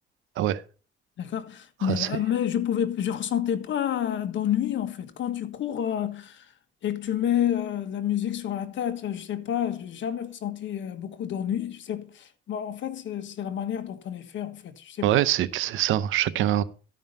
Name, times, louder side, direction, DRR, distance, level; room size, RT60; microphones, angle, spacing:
voice 1, 1.2-6.4 6.8-15.1, left 10 dB, 70° left, 1.5 m, -29 dB
voice 2, 1.8-2.2 15.0-16.6, right 12 dB, 85° right, 0.8 m, -24 dB
13.0 x 5.5 x 5.4 m
cardioid pair, 90°, 20 cm